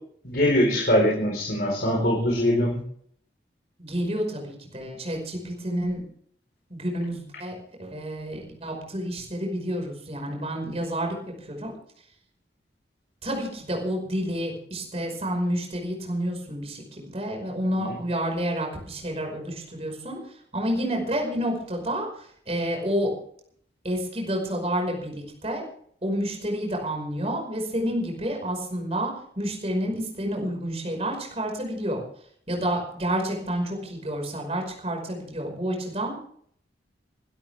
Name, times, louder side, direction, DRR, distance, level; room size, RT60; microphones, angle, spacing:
voice 1, 0.2-2.8, equal, 55° left, -2 dB, 4.5 m, -22 dB
voice 2, 3.8-6.0 6.7-11.7 13.2-20.2 20.5-23.1 23.8-25.6 26.0-32.0 32.5-36.1, equal, 35° right, 2 dB, 5.4 m, -29 dB
24.0 x 13.0 x 3.5 m, 0.62 s
head